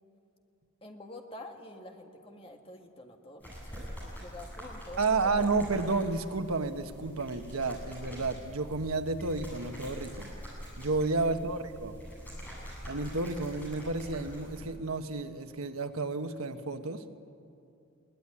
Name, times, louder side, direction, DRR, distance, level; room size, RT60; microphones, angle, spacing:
voice 1, 0.8-5.5 11.3-11.6, left 1 dB, 25° left, 3 dB, 1.8 m, -48 dB
sound 1, 3.4-14.7, equal, 10° left, 7.9 m, -44 dB
voice 2, 5.0-10.3 10.8-12.0 12.9-17.0, right 3 dB, 85° right, 7 dB, 1.3 m, -31 dB
21.5 x 18.0 x 10.0 m, 2.6 s
head